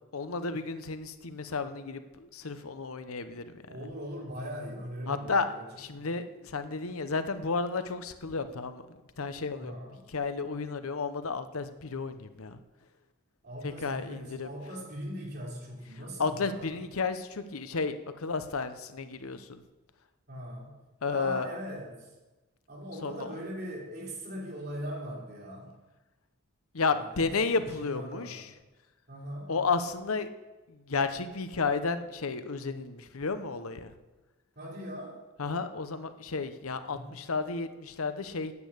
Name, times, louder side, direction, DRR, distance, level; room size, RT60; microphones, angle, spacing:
voice 1, 0.1-3.5 3.8-3.9 5.1-5.5 5.8-9.7 10.1-12.6 13.6-14.5 16.2-19.6 21.0-21.5 23.0-23.3 26.7-28.5 29.5-30.3 30.7-33.9 35.4-38.5, left 4 dB, 85° left, 10 dB, 0.9 m, -32 dB
voice 2, 3.7-5.6 5.9-6.1 9.6-10.0 13.4-16.8 20.3-20.7 21.1-22.1 22.7-25.7 26.9-28.4 29.1-29.5 34.5-35.2 36.9-37.1, equal, 50° right, -2 dB, 3.3 m, -40 dB
9.9 x 8.5 x 8.2 m, 1.1 s
head